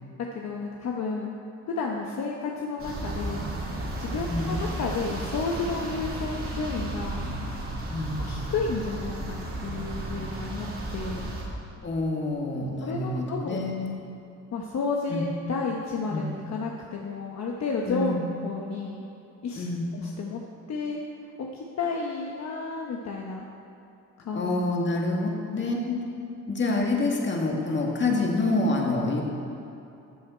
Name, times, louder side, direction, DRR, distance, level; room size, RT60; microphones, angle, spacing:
voice 1, 0.3-1.3 1.7-3.5 4.0-7.3 8.2-10.7 10.9-11.3 12.8-13.6 14.5-19.0 19.4-19.6 19.9-20.4 20.7-21.0 21.4-23.5 24.2-24.6 25.6-25.7, left 4 dB, 60° left, 0 dB, 1.1 m, -31 dB
sound 1, 2.8-11.4, right 1 dB, 45° right, 2.7 m, -33 dB
voice 2, 4.1-4.6 7.9-8.3 11.8-13.9 15.1-15.2 16.1-16.2 17.8-18.2 19.5-19.9 24.3-26.0 26.5-29.2, left 2 dB, 40° left, -1 dB, 2.1 m, -27 dB
14.0 x 7.8 x 4.4 m, 2.7 s
cardioid pair, 90°, 30 cm